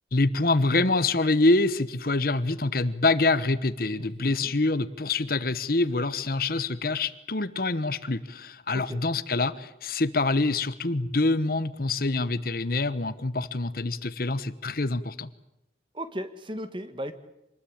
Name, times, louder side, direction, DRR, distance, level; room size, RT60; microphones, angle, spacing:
voice 1, 0.1-15.3, left 2 dB, 55° left, 15 dB, 1.1 m, -25 dB
voice 2, 4.0-4.5 5.2-5.5 8.7-9.0 15.9-17.1, equal, 25° right, 11 dB, 1.7 m, -37 dB
26.5 x 20.5 x 8.8 m, 0.86 s
head